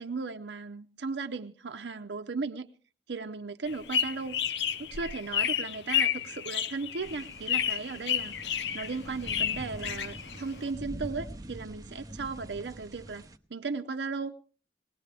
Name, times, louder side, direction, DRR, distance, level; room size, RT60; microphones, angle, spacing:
voice 1, 0.0-2.7 3.1-4.4 4.8-14.4, right 4 dB, 80° right, 5 dB, 0.7 m, -36 dB
sound 1, 3.7-10.7, left 9 dB, 80° left, 0.7 m, -31 dB
sound 2, 7.0-13.4, right 1 dB, 20° right, 0.8 m, -45 dB
20.5 x 18.5 x 3.3 m, 0.39 s
head